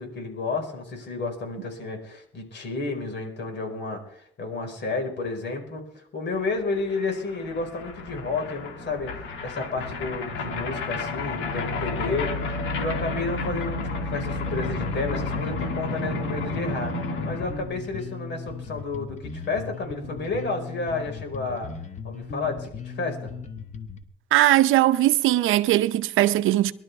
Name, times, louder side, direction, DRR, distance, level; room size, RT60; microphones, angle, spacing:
voice 1, 0.0-12.3 12.7-16.9 17.2-21.7 22.0-23.3, left 3 dB, 65° left, 5.0 m, -31 dB
sound 1, 6.5-6.6 6.7-17.6, left 3 dB, 85° left, 2.5 m, -31 dB
Bass guitar, 14.4-24.0, left 5 dB, 35° left, 1.5 m, -38 dB
voice 2, 24.3-26.7, right 14 dB, 85° right, 0.7 m, -19 dB
23.0 x 12.0 x 3.5 m
cardioid pair, 90°, 20 cm